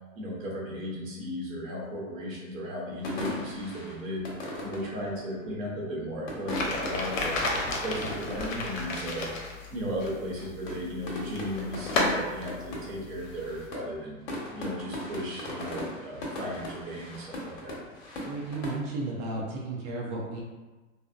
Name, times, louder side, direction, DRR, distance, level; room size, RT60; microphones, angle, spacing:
voice 1, 0.2-4.2 4.6-7.4 7.8-9.3 9.7-14.2 14.5-17.8, equal, 85° right, -4 dB, 0.9 m, -35 dB
sound 1, 3.0-5.5 6.1-8.7 9.0-9.1 9.3-9.7 10.0-10.3 10.7-18.8, left 1 dB, 60° left, 0.9 m, -38 dB
sound 2, 6.5-13.7, left 2 dB, 90° left, 0.6 m, -33 dB
voice 2, 18.3-20.4, right 2 dB, 40° right, -4 dB, 0.6 m, -33 dB
2.6 x 2.0 x 2.3 m, 1.2 s
hypercardioid pair, 120°, 39 cm